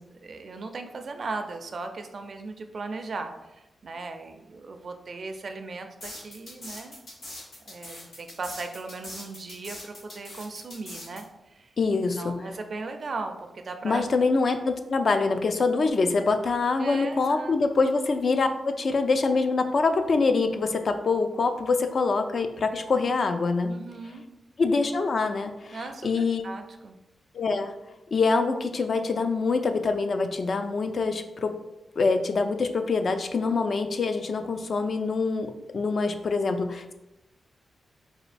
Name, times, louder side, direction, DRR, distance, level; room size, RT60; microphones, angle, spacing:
voice 1, 0.2-7.0 7.7-14.0 16.8-17.5 23.7-24.2 25.7-27.0, right 3 dB, 60° right, 6 dB, 0.4 m, -37 dB
sound 1, 6.0-11.2, left 1 dB, 85° left, 1.4 m, -41 dB
voice 2, 11.8-12.4 13.8-23.7 24.6-25.8 26.0-26.4 27.3-27.7 28.1-31.5 32.0-36.9, left 4 dB, 55° left, 7 dB, 0.3 m, -25 dB
4.2 x 2.2 x 2.5 m, 0.96 s
cardioid pair, 70°, 0 cm